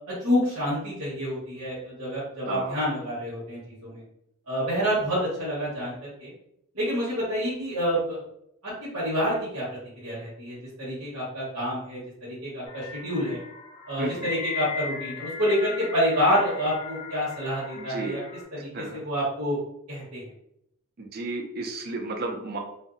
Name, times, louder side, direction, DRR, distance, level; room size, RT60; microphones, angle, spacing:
voice 1, 0.0-4.0 4.5-6.3 6.7-8.2 8.6-9.7 10.0-13.4 13.9-18.2 18.5-19.6 19.9-20.2, equal, 85° right, -8 dB, 1.2 m, -28 dB
voice 2, 2.5-2.8 14.0-14.1 17.8-18.2 18.7-19.0 21.0-22.6, right 3 dB, 45° right, 2 dB, 0.4 m, -33 dB
sound 1, 12.7-18.4, left 5 dB, 25° left, 0.3 m, -38 dB
2.6 x 2.0 x 2.4 m, 0.75 s
head